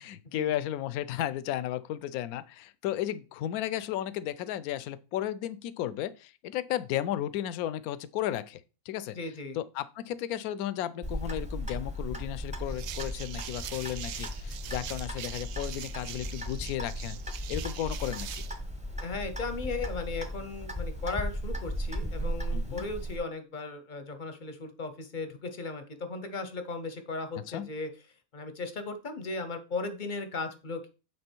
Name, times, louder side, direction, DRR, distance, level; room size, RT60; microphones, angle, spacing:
voice 1, 0.0-8.6 8.9-9.2 9.5-17.2 17.5-18.4 22.5-22.8 27.5-27.7, left 12 dB, 70° left, 1.0 m, -34 dB
voice 2, 9.1-9.6 19.0-27.9 28.3-30.9, left 3 dB, 40° left, 0.7 m, -36 dB
Clock, 11.0-23.2, equal, 5° right, 0.7 m, -36 dB
sound 1, 12.7-18.6, right 10 dB, 80° right, 0.6 m, -43 dB
8.6 x 3.7 x 4.5 m
omnidirectional pair, 1.7 m